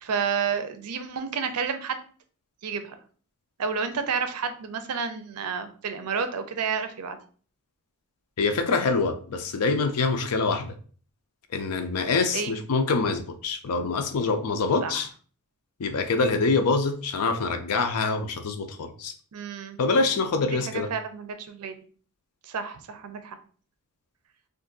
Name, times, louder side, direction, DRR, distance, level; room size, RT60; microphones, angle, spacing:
voice 1, 0.0-2.0 2.6-2.9 3.6-7.2 12.3-12.5 14.8-14.9 19.3-19.8 20.5-21.8 22.4-23.4, right 6 dB, 85° right, 9 dB, 0.5 m, -30 dB
voice 2, 8.4-10.7 11.5-15.1 15.8-19.1 19.8-20.9, left 4 dB, 90° left, 7 dB, 0.5 m, -25 dB
2.6 x 2.5 x 3.8 m, 0.43 s
head